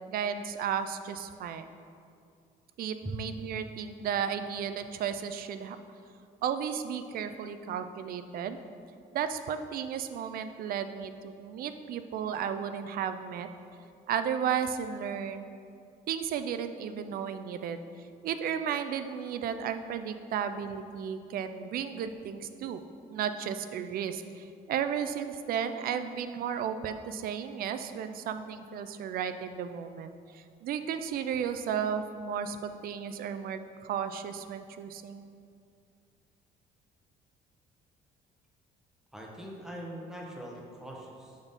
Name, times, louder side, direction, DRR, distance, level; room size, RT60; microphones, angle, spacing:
voice 1, 0.1-1.7 2.8-5.8 6.4-8.6 9.1-13.5 14.1-15.6 16.1-17.8 18.2-22.8 23.1-35.3, right 8 dB, 60° right, 10 dB, 0.4 m, -34 dB
voice 2, 39.1-41.4, right 1 dB, 5° right, -2 dB, 1.0 m, -41 dB
6.1 x 3.9 x 5.3 m, 2.4 s
cardioid pair, 110°, 17 cm